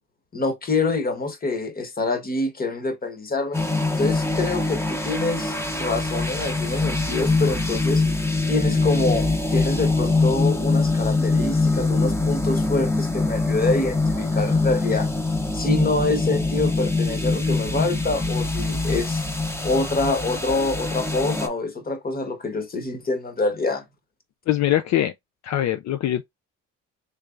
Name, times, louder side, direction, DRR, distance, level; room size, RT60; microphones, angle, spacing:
voice 1, 0.3-3.6 4.0-8.0 8.5-15.1 15.5-19.2 19.6-23.8, left 3 dB, 30° left, 1.2 m, -26 dB
sound 1, 3.5-21.5, left 3 dB, 10° left, 0.8 m, -23 dB
voice 2, 24.5-25.1 25.4-26.2, left 12 dB, 65° left, 0.5 m, -22 dB
3.4 x 3.2 x 2.4 m
cardioid pair, 90°, 30 cm